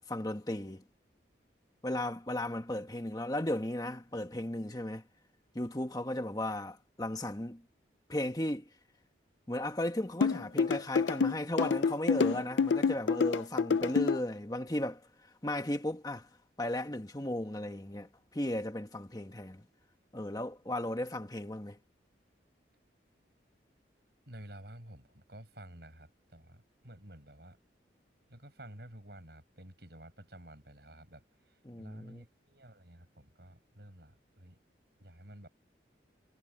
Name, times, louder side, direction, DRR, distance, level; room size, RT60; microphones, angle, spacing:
voice 1, 0.1-0.8 1.8-5.0 5.5-7.6 8.1-8.7 9.5-15.1 15.4-16.3 16.6-19.6 20.1-21.8 31.6-32.2, left 1 dB, 20° left, 1.5 m, -35 dB
sound 1, 10.2-14.2, left 5 dB, 90° left, 0.5 m, -27 dB
voice 2, 24.3-27.6 28.3-34.6 35.0-35.5, right 1 dB, 65° right, 6.3 m, -52 dB
head